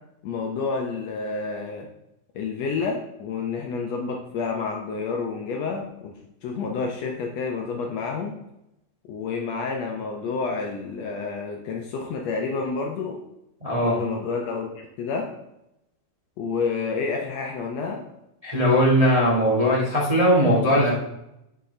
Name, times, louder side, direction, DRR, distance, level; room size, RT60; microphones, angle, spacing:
voice 1, 0.2-1.9 2.3-6.1 6.4-8.4 9.1-13.2 13.8-15.3 16.4-18.0, left 4 dB, 75° left, 1 dB, 1.6 m, -29 dB
voice 2, 13.6-14.0 18.4-20.9, equal, 65° right, -5 dB, 0.3 m, -19 dB
8.1 x 6.9 x 3.2 m, 0.87 s
omnidirectional pair, 3.8 m